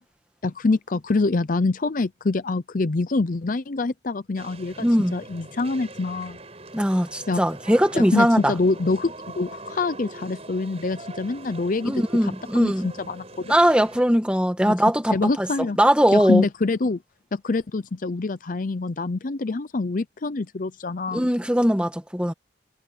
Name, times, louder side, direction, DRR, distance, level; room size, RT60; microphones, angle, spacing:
voice 1, 0.4-4.9 5.1-6.4 7.3-7.4 7.9-13.5 14.7-14.8 15.1-15.8 16.1-17.0 17.3-21.3, left 3 dB, 40° left, 0.5 m, -25 dB
sound 1, 4.4-14.0, right 2 dB, 30° right, 6.7 m, -42 dB
voice 2, 4.8-5.2 6.7-8.5 11.8-12.9 13.5-15.5 15.8-16.4 21.1-22.3, equal, 5° right, 1.6 m, -20 dB
head